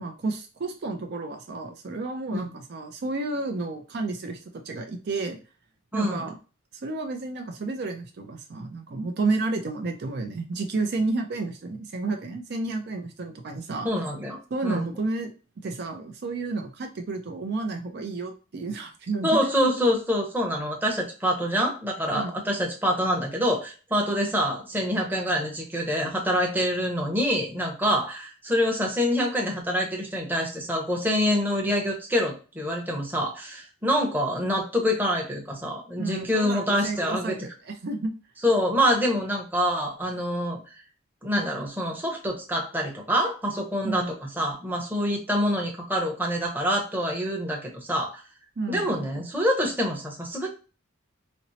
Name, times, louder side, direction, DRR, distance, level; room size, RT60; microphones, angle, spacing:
voice 1, 0.0-5.4 5.9-6.4 6.8-13.9 14.5-15.3 15.6-19.4 22.2-22.4 35.9-38.1 43.8-44.1 48.6-49.0, right 3 dB, 55° right, 4 dB, 0.4 m, -31 dB
voice 2, 5.9-6.2 13.8-14.9 19.2-37.4 38.4-40.6 41.2-48.2 48.7-50.5, equal, 10° right, -1 dB, 0.8 m, -26 dB
4.2 x 2.0 x 2.7 m, 0.34 s
head